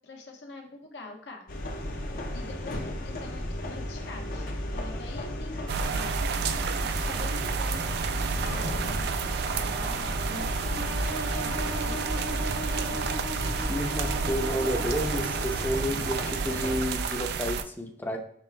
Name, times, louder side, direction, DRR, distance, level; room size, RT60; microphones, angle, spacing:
voice 1, 0.0-1.5 2.3-6.4 6.8-9.0 9.4-10.9 11.4-13.1, left 2 dB, 75° left, 2 dB, 0.9 m, -45 dB
sound 1, 1.5-16.9, left 1 dB, 55° left, 0.6 m, -35 dB
sound 2, 5.7-17.6, right 5 dB, 60° right, 0.3 m, -30 dB
sound 3, 10.7-15.6, equal, 85° right, 1.0 m, -38 dB
voice 2, 13.7-18.2, equal, 10° left, 3 dB, 0.5 m, -31 dB
6.1 x 3.3 x 2.2 m, 0.68 s
head